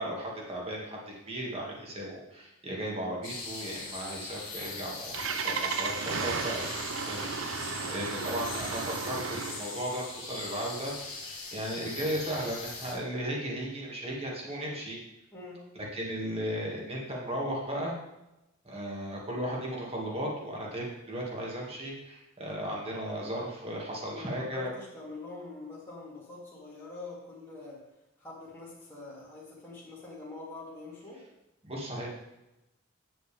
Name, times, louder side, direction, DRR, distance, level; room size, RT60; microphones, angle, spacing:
voice 1, 0.0-15.0 15.8-17.9 18.6-24.7 31.6-32.1, equal, 30° right, -3 dB, 2.1 m, -36 dB
sound 1, 3.2-12.9, left 3 dB, 45° left, 3.1 m, -41 dB
Engine starting, 4.7-9.8, right 5 dB, 65° right, 0.6 m, -34 dB
voice 2, 7.9-8.5 11.7-11.9 15.3-15.6 24.1-27.8 28.2-31.2, left 2 dB, 15° left, -8 dB, 2.2 m, -45 dB
9.1 x 7.9 x 3.5 m, 0.93 s
head